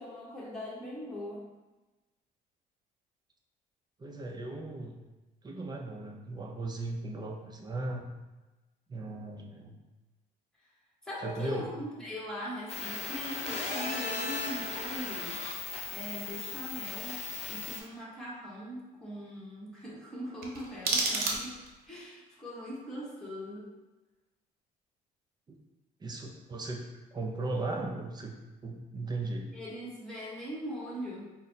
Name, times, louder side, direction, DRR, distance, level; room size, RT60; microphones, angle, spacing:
voice 1, 0.0-1.5 11.0-15.4 15.9-21.6 21.9-23.7 29.5-31.3, equal, 5° left, -7 dB, 1.1 m, -41 dB
voice 2, 4.0-5.0 5.4-8.1 8.9-9.8 11.2-11.7 25.5-25.6 26.0-28.3 28.6-29.5, right 2 dB, 25° right, 2 dB, 0.5 m, -37 dB
sound 1, 12.7-17.8, left 4 dB, 40° left, 0.6 m, -37 dB
sound 2, 20.4-21.9, right 3 dB, 65° right, 0.8 m, -31 dB
4.0 x 2.0 x 3.9 m, 1.1 s
cardioid pair, 110°, 17 cm